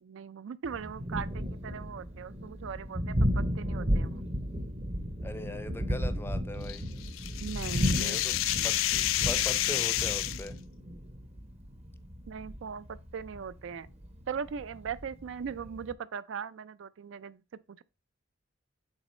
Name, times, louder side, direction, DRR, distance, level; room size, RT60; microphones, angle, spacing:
voice 1, 0.0-4.2 7.4-8.2 12.3-13.9 14.3-17.4 17.7-17.8, right 6 dB, 65° right, 0.4 m, -39 dB
Thunder, 0.6-15.9, equal, 35° right, 0.7 m, -34 dB
voice 2, 5.2-6.8 8.0-8.3 8.6-10.6, left 1 dB, 10° left, 0.5 m, -40 dB
sound 1, 6.7-10.5, left 14 dB, 85° left, 0.4 m, -29 dB
6.3 x 3.7 x 4.1 m
head